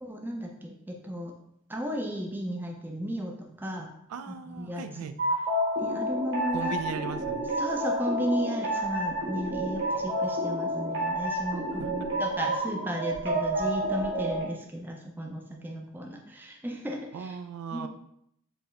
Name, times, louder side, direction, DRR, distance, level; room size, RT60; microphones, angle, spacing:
voice 1, 0.0-1.3 1.7-3.9 4.3-5.1 5.8-6.7 7.6-17.4 17.7-17.9, equal, 10° right, 1 dB, 0.4 m, -34 dB
voice 2, 4.1-5.1 6.5-7.5 11.8-12.1 17.1-17.9, right 6 dB, 80° right, 10 dB, 0.3 m, -37 dB
sound 1, 5.2-14.4, right 1 dB, 55° right, 1.3 m, -29 dB
4.5 x 2.8 x 3.1 m, 0.75 s
head